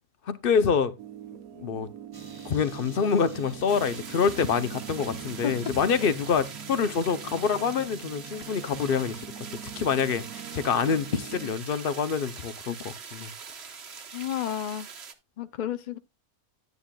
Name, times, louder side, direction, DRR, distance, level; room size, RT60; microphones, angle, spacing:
voice 1, 0.3-0.9 1.6-1.9 2.4-9.2 9.5-13.3, left 6 dB, 50° left, 0.8 m, -26 dB
sound 1, 1.0-11.5, right 10 dB, 80° right, 1.2 m, -44 dB
sound 2, 2.1-9.1, right 3 dB, 25° right, 0.6 m, -47 dB
sound 3, 3.7-15.1, right 6 dB, 50° right, 1.2 m, -43 dB
voice 2, 14.1-14.9 15.4-16.0, left 10 dB, 70° left, 0.4 m, -31 dB
10.0 x 9.8 x 2.3 m
omnidirectional pair, 1.5 m